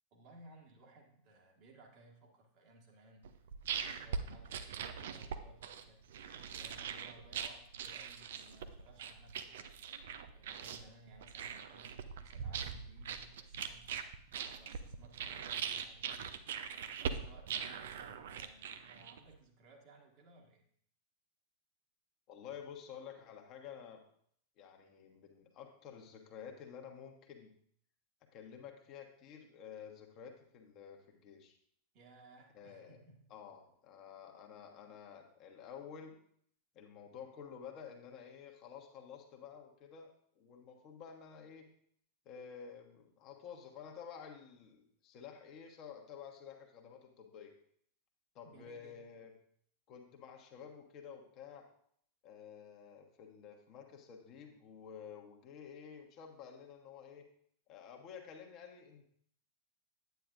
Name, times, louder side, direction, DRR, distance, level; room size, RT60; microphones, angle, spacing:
voice 1, 0.1-3.3 3.7-6.0 6.5-9.8 10.3-13.9 14.4-16.4 17.0-20.6 31.9-33.2 48.4-49.0, right 2 dB, 40° right, 1 dB, 1.8 m, -60 dB
sound 1, 3.2-19.3, right 7 dB, 60° right, 0.6 m, -42 dB
voice 2, 22.3-24.0 24.6-27.5 28.3-31.6 32.5-33.0 33.3-36.2 36.7-41.7 42.2-47.5 48.3-49.3 49.9-51.6 52.2-57.2 57.7-59.1, left 7 dB, 35° left, 3 dB, 1.3 m, -51 dB
9.3 x 9.1 x 2.6 m, 0.65 s
figure-of-eight pair, 90°, 0 cm